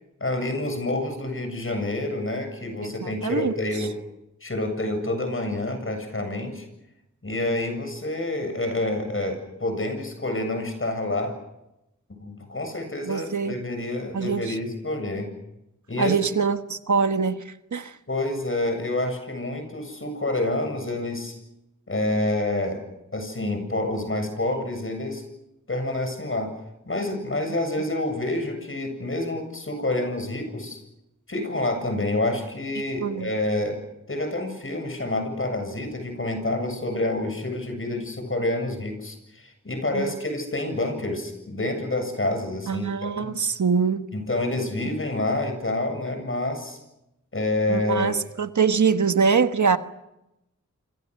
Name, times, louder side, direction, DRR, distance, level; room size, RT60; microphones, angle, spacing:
voice 1, 0.2-3.9 4.4-6.7 7.2-11.4 12.2-15.3 15.9-16.2 18.1-21.3 21.9-22.8 23.1-25.2 25.7-26.5 26.9-30.8 31.3-33.8 34.1-43.3 44.1-46.8 47.3-48.1, left 2 dB, 45° left, 7.8 m, -28 dB
voice 2, 2.8-3.5 13.1-13.6 14.1-14.6 16.0-18.0 33.0-33.3 39.9-40.2 42.7-44.1 47.7-49.8, right 5 dB, 70° right, 1.4 m, -24 dB
27.5 x 27.0 x 6.6 m
wide cardioid pair, 85°, 30 cm